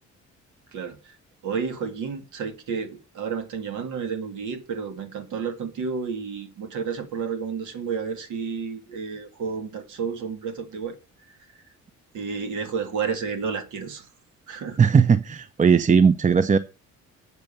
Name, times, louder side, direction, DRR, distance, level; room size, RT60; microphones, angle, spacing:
voice 1, 0.7-1.2 1.4-11.0 11.3-11.4 12.1-14.1 14.5-14.8, right 6 dB, 80° right, 2.0 m, -31 dB
voice 2, 14.8-16.6, right 6 dB, 25° right, 0.7 m, -18 dB
8.1 x 7.0 x 6.8 m
cardioid pair, 90°, 30 cm